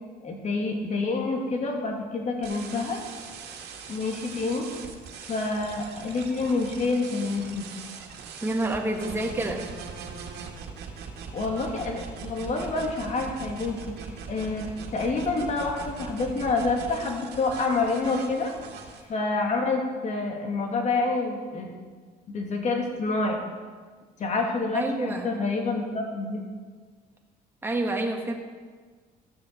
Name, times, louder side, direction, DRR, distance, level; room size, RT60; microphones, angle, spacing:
voice 1, 0.2-3.0 3.9-4.7 5.2-7.6 11.3-14.0 14.3-18.5 19.1-21.7 22.3-23.4 24.2-26.4, left 3 dB, 45° left, 2 dB, 2.5 m, -28 dB
sound 1, 2.4-19.0, right 6 dB, 75° right, 2.0 m, -41 dB
voice 2, 8.4-9.6 24.7-25.4 27.6-28.3, right 2 dB, 15° right, 1 dB, 1.9 m, -28 dB
14.5 x 7.1 x 6.8 m, 1.5 s
cardioid pair, 110°, 17 cm